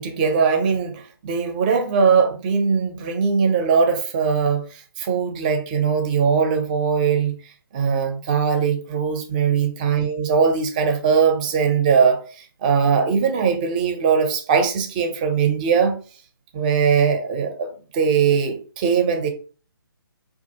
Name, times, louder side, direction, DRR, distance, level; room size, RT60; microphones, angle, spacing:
voice 1, 0.0-7.4 7.7-16.0 16.5-19.3, right 6 dB, 20° right, 0.5 m, -20 dB
4.4 x 2.4 x 2.8 m
figure-of-eight pair, 145°, 12 cm